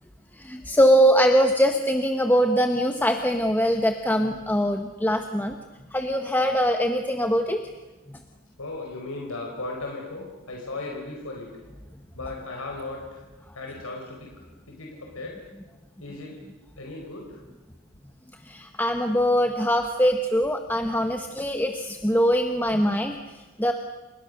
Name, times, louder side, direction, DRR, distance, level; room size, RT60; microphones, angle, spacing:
voice 1, 0.4-5.5 5.9-7.6 18.5-23.2 23.6-23.7, equal, 10° left, 5 dB, 1.3 m, -22 dB
voice 2, 8.6-11.6 12.1-13.2 13.5-14.3 14.7-15.4 16.0-16.4 16.8-17.4 20.7-21.0 23.1-23.2, left 2 dB, 85° left, 0 dB, 4.9 m, -36 dB
30.0 x 29.0 x 6.7 m, 1.2 s
head